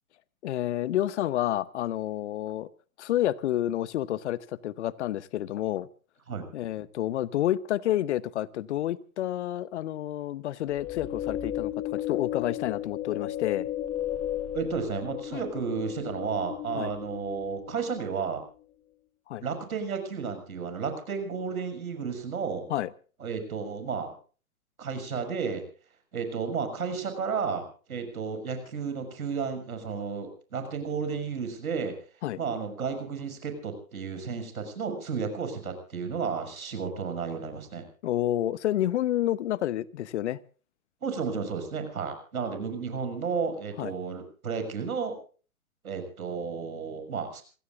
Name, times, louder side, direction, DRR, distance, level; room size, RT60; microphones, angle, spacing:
voice 1, 0.4-2.7 3.0-5.9 6.5-13.7 15.3-15.4 16.7-16.9 19.3-19.4 22.7-22.9 32.2-32.4 38.0-40.4 43.8-43.9, left 13 dB, 55° left, 19 dB, 1.0 m, -29 dB
sound 1, 10.7-18.0, left 12 dB, 20° left, 0.9 m, -34 dB
voice 2, 14.5-18.4 19.4-22.7 23.2-24.1 24.8-25.6 26.1-27.6 27.9-32.0 32.4-37.9 41.0-45.2 45.8-47.4, right 5 dB, 80° right, 7 dB, 6.9 m, -32 dB
27.5 x 17.5 x 2.5 m, 0.39 s
hypercardioid pair, 130°, 42 cm